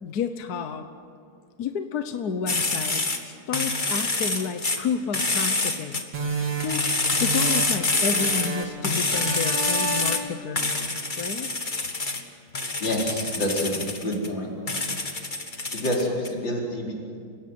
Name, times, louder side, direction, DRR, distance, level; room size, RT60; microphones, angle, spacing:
voice 1, 0.0-0.9 1.6-6.0 6.4-6.8 7.2-11.5, left 6 dB, 60° left, 8 dB, 1.5 m, -31 dB
sound 1, 2.5-3.2 3.5-4.8 5.1-6.0 6.6-8.5 8.8-10.2 10.6-12.2 12.5-14.3 14.7-16.3, left 3 dB, 25° left, 1.8 m, -26 dB
sound 2, 6.1-7.9 8.1-8.8 9.1-10.4, right 3 dB, 75° right, 3.9 m, -30 dB
voice 2, 12.8-14.5 15.7-17.0, left 1 dB, 85° left, -2 dB, 5.2 m, -27 dB
29.5 x 16.5 x 9.4 m, 2.3 s
omnidirectional pair, 2.0 m